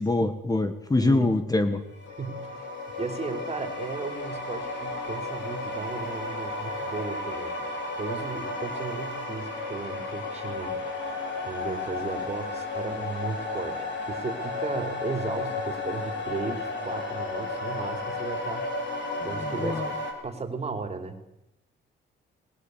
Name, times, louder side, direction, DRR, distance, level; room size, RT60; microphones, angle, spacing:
voice 1, 0.0-1.8 19.3-19.9, left 2 dB, 20° left, 10 dB, 1.5 m, -25 dB
voice 2, 1.0-1.3 2.2-2.7 3.0-7.5 8.0-10.8 11.4-18.7 19.2-19.8 20.2-21.2, right 4 dB, 35° right, 5 dB, 4.2 m, -35 dB
sound 1, 1.9-20.1, left 2 dB, 65° left, 5.6 m, -33 dB
21.5 x 19.0 x 8.3 m, 0.86 s
cardioid pair, 90°, 20 cm